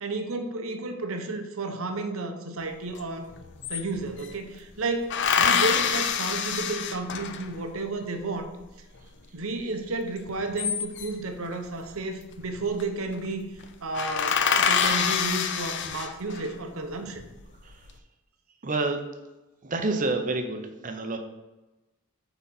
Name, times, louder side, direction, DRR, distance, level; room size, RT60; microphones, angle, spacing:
voice 1, 0.0-3.3 3.7-8.5 9.3-13.5 13.8-17.3, right 2 dB, 65° right, 6 dB, 0.8 m, -32 dB
sound 1, 3.0-3.1 3.3-4.4 5.1-7.6 10.3-11.3 12.4-12.8 13.1-13.3 13.6-13.7 13.9-16.5 17.1-17.7, left 7 dB, 50° left, 0.5 m, -26 dB
voice 2, 18.6-19.0 19.6-21.2, right 3 dB, 35° right, 6 dB, 0.7 m, -28 dB
8.3 x 4.0 x 4.1 m, 1.1 s
head